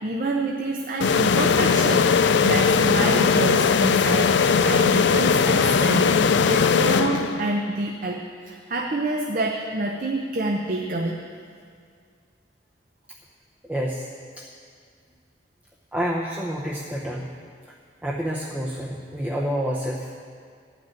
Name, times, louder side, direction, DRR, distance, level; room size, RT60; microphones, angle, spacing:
voice 1, 0.0-2.1 2.4-4.4 4.6-11.2, right 2 dB, 50° right, 1 dB, 0.7 m, -27 dB
sound 1, 1.0-7.7, left 5 dB, 85° left, 0.4 m, -19 dB
voice 2, 13.6-14.1 14.4-14.5 15.9-17.3 18.0-20.1, equal, 10° right, -3 dB, 0.7 m, -28 dB
12.0 x 6.1 x 8.9 m, 2.1 s
head